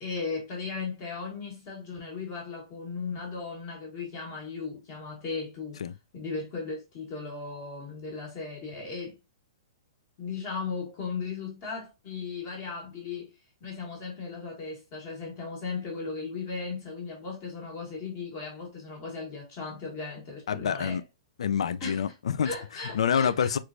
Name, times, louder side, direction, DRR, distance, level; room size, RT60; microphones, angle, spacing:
voice 1, 0.0-5.8 6.1-9.2 10.2-13.3 13.6-21.0 21.8-22.0 22.4-23.5, left 4 dB, 25° left, 1.0 m, -37 dB
voice 2, 20.5-21.0 21.4-22.5 22.9-23.6, left 7 dB, 85° left, 0.3 m, -27 dB
3.3 x 3.0 x 2.4 m
hypercardioid pair, 175°, 3 cm